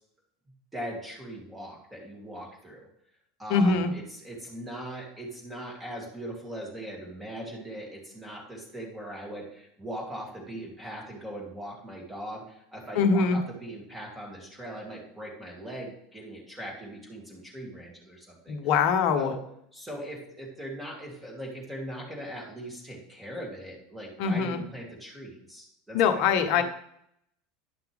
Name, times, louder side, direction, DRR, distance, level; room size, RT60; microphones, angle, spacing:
voice 1, 0.7-2.9 3.4-18.6 19.1-19.4 19.7-26.6, right 1 dB, 10° right, -2 dB, 3.0 m, -40 dB
voice 2, 3.5-3.9 12.9-13.4 18.5-19.3 24.2-24.6 25.9-26.6, left 5 dB, 60° left, 9 dB, 0.9 m, -23 dB
10.5 x 5.8 x 3.5 m, 0.74 s
hypercardioid pair, 85°, 0 cm